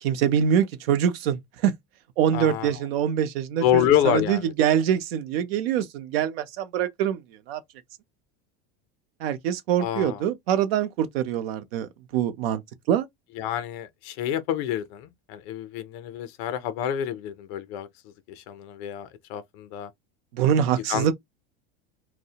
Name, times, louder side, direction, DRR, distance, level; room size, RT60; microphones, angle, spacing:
voice 1, 0.0-1.8 2.2-7.2 7.5-7.6 9.2-12.6 12.9-13.1 20.3-21.1, right 9 dB, 75° right, 0.6 m, -24 dB
voice 2, 2.3-2.8 3.6-4.5 9.8-10.2 13.4-19.9 20.9-21.1, left 10 dB, 40° left, 0.4 m, -27 dB
2.3 x 2.0 x 2.7 m
supercardioid pair, 170°, 30 cm